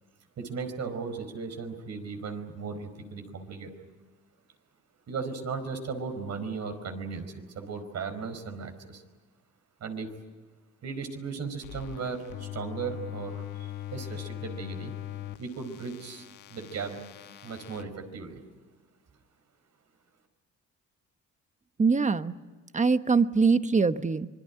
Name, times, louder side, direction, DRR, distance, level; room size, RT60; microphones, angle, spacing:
voice 1, 0.4-3.7 5.1-9.0 9.8-10.1 10.8-13.4 13.9-14.9 15.4-16.2 16.5-17.0 17.4-18.4, right 5 dB, 60° right, 7 dB, 4.9 m, -36 dB
sound 1, 11.6-17.8, left 13 dB, 90° left, 1.5 m, -41 dB
voice 2, 21.8-22.3 22.7-24.3, right 4 dB, 25° right, 11 dB, 1.2 m, -23 dB
25.5 x 22.5 x 10.0 m, 1.3 s
cardioid pair, 90°, 30 cm